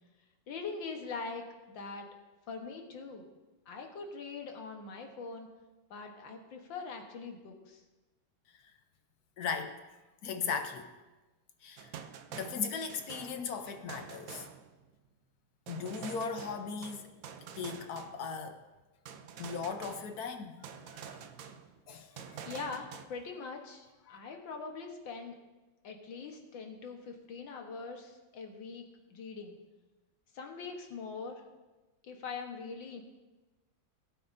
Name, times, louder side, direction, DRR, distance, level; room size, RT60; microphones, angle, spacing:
voice 1, 0.5-1.4 1.7-2.1 2.5-3.3 3.7-5.5 5.9-7.8 22.5-25.4 25.8-28.8 29.1-29.6 30.3-31.4 32.0-33.0, left 4 dB, 85° left, 2.0 m, -42 dB
voice 2, 9.4-9.8 10.2-10.9 11.6-11.9 12.3-14.5 15.7-17.1 17.6-18.6 19.4-20.5 20.9-21.2 21.9-22.4 24.1-24.2, left 5 dB, 60° left, 1.2 m, -37 dB
sound 1, 11.8-15.1 15.7-18.5 19.1-20.3 20.6-23.1, right 7 dB, 65° right, 0.9 m, -47 dB
19.0 x 8.6 x 2.7 m
omnidirectional pair, 2.0 m